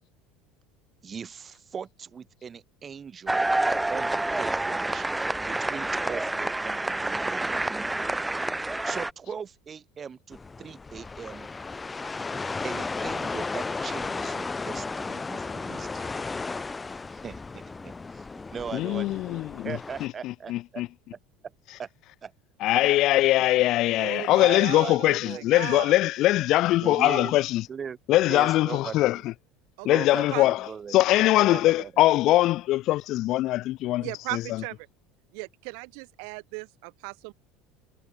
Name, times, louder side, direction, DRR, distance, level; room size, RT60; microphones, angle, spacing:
voice 1, 1.0-3.5 3.9-5.1 5.5-7.6 8.8-11.5 12.6-16.0 17.1-18.3 18.5-20.8 21.8-21.9 22.2-22.3 22.7-22.8 24.4-25.4 26.8-27.3 27.7-28.0 28.3-29.2 29.9-31.0 31.4-31.9, right 6 dB, 25° right, 3.9 m, -39 dB
sound 1, 3.3-9.1, right 2 dB, 5° right, 0.5 m, -28 dB
sound 2, 10.3-20.1, left 4 dB, 10° left, 2.4 m, -34 dB
voice 2, 18.7-20.9 21.7-21.8 22.6-27.6 28.1-29.3 29.8-34.7, left 16 dB, 50° left, 0.4 m, -22 dB
voice 3, 24.0-26.0 29.8-29.9 30.3-30.5 34.0-34.8 35.3-37.3, right 40 dB or more, 70° right, 1.3 m, -37 dB
cardioid pair, 155°, 0 cm